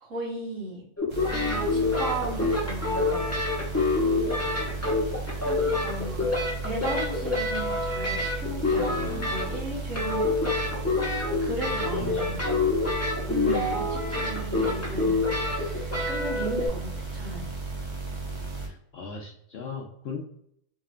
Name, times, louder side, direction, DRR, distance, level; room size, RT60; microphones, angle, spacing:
voice 1, 0.0-0.9 1.5-3.3 5.4-10.3 11.4-12.4 13.3-17.5, right 2 dB, 65° right, -6 dB, 1.9 m, -36 dB
sound 1, 1.0-9.7 9.9-16.7, left 3 dB, 15° left, 0.9 m, -27 dB
sound 2, 1.1-18.7, right 3 dB, 40° right, 0.4 m, -35 dB
voice 2, 11.9-12.4 18.6-20.2, left 5 dB, 60° left, 0 dB, 0.7 m, -38 dB
3.6 x 3.2 x 2.4 m, 0.70 s
omnidirectional pair, 1.5 m